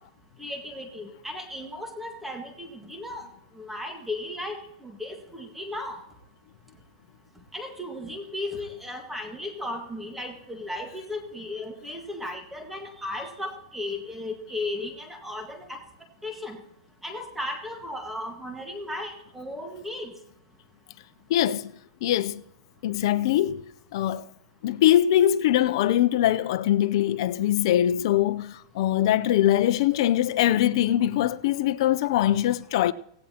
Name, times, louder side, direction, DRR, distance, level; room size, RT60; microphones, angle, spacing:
voice 1, 0.4-3.3 3.5-6.0 7.5-15.8 16.2-16.6 17.0-20.1, left 1 dB, 5° right, 1.6 m, -35 dB
voice 2, 21.3-21.7 22.0-22.4 22.8-24.3 24.6-32.9, left 12 dB, 60° left, 0.5 m, -22 dB
17.0 x 16.5 x 2.9 m
hypercardioid pair, 145°, 3 cm